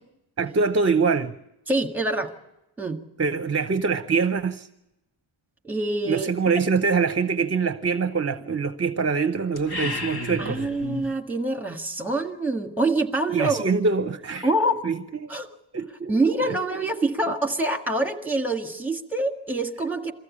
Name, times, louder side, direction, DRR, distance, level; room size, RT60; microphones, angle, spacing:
voice 1, 0.4-1.3 3.2-4.7 6.1-10.6 13.3-14.5 14.8-15.3 15.7-16.1 16.4-16.8, right 5 dB, 30° right, 10 dB, 0.7 m, -24 dB
voice 2, 1.7-2.3 2.8-3.0 5.6-6.3 10.4-13.6 14.4-14.8 15.3-15.5 16.1-20.1, right 2 dB, 5° right, 4 dB, 1.7 m, -25 dB
sound 1, 9.5-11.1, left 2 dB, 50° left, 1.9 m, -32 dB
23.0 x 15.0 x 8.5 m, 0.92 s
wide cardioid pair, 150°, 48 cm